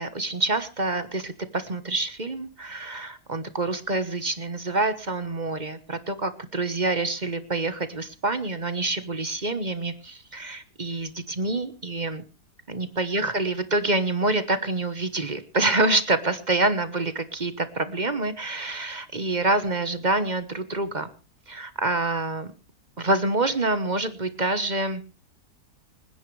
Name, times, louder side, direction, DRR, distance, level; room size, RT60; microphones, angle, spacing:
voice 1, 0.0-12.2 12.7-21.1 21.5-22.5 23.0-25.0, right 2 dB, 30° right, 11 dB, 1.2 m, -27 dB
26.0 x 10.0 x 3.3 m, 0.33 s
omnidirectional pair, 1.8 m